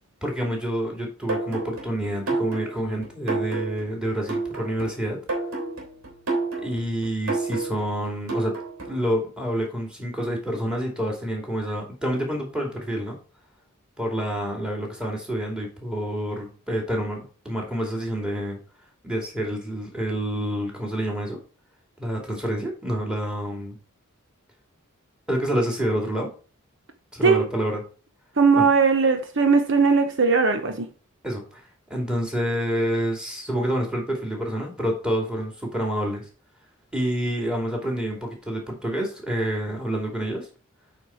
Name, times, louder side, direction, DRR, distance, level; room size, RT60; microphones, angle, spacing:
voice 1, 0.2-5.2 6.6-8.6 8.8-13.2 14.0-18.6 19.0-21.4 22.0-23.8 25.3-26.3 27.1-27.8 28.5-28.7 31.2-36.2 36.9-40.5, equal, 5° right, 2.6 m, -28 dB
sound 1, 1.3-9.1, right 3 dB, 80° right, 3.3 m, -30 dB
voice 2, 28.4-30.9, right 5 dB, 60° right, 1.0 m, -19 dB
8.6 x 4.6 x 4.5 m
head